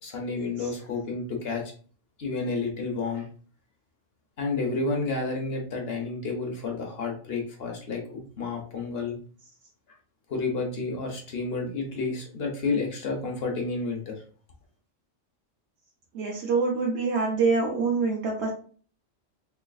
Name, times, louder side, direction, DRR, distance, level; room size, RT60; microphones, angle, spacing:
voice 1, 0.0-1.6 2.2-3.3 4.4-9.2 10.3-14.2, left 3 dB, 55° left, 1 dB, 1.0 m, -30 dB
voice 2, 16.1-18.5, right 4 dB, 65° right, -2 dB, 0.9 m, -25 dB
3.7 x 3.2 x 2.2 m, 0.42 s
omnidirectional pair, 1.3 m